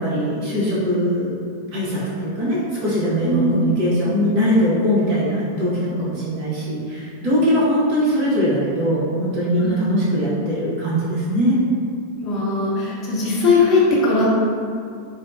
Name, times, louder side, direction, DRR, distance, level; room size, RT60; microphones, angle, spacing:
voice 1, 0.0-1.3 1.7-11.6, equal, 45° right, -8 dB, 1.1 m, -21 dB
voice 2, 3.2-3.6 9.6-9.7 12.2-14.2, left 3 dB, 30° left, -7 dB, 0.9 m, -19 dB
3.6 x 2.2 x 2.6 m, 2.3 s
figure-of-eight pair, 90°, 0 cm